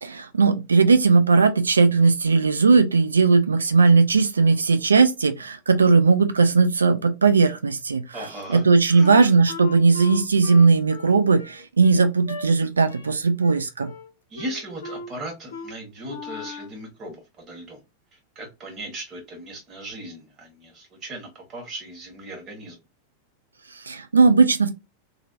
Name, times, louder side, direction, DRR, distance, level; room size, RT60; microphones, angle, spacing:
voice 1, 0.0-8.0 8.5-13.9 23.9-24.7, right 4 dB, 75° right, 0.4 m, -18 dB
voice 2, 8.1-8.6 8.9-9.3 14.3-17.8 18.1-22.8, right 1 dB, 30° right, 1.5 m, -37 dB
Wind instrument woodwind instrument, 9.0-12.5 12.9-13.1 13.4-14.1 14.3-15.1 15.5-15.7 16.0-16.8, left 3 dB, 70° left, 0.6 m, -38 dB
2.9 x 2.7 x 2.5 m
figure-of-eight pair, 90°, 0 cm